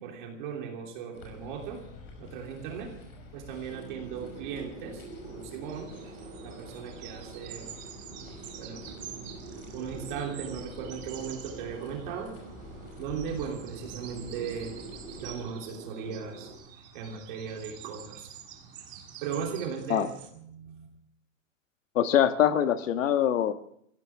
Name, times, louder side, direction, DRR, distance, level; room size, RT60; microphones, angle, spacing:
voice 1, 0.0-1.8 2.2-2.9 3.3-5.9 6.4-7.7 8.1-8.8 9.7-12.3 13.0-14.8 15.2-16.5 16.9-18.3 19.2-20.1 20.3-20.9, right 7 dB, 40° right, 1 dB, 3.1 m, -37 dB
sound 1, 1.1-15.4, left 3 dB, 45° left, 5.9 m, -48 dB
sound 2, 3.7-16.6, right 3 dB, 85° right, 4.6 m, -46 dB
sound 3, 5.6-20.3, right 8 dB, 20° right, 1.8 m, -48 dB
voice 2, 21.9-23.5, left 10 dB, 80° left, 9 dB, 1.5 m, -23 dB
25.5 x 16.0 x 3.5 m, 0.70 s
supercardioid pair, 175°, 38 cm